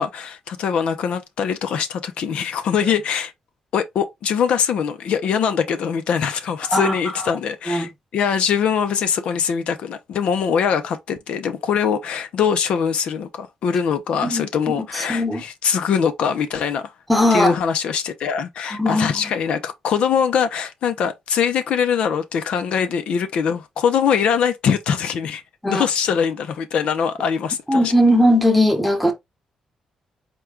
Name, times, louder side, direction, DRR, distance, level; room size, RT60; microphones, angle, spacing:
voice 1, 0.0-3.3 3.7-16.9 17.3-27.9, left 7 dB, 65° left, 0.5 m, -22 dB
voice 2, 6.7-7.3 7.7-7.9 14.2-15.4 17.1-17.6 18.8-19.2 25.6-25.8 27.7-29.1, left 1 dB, ahead, 0.9 m, -19 dB
4.4 x 2.2 x 3.6 m
wide cardioid pair, 180°, 2 cm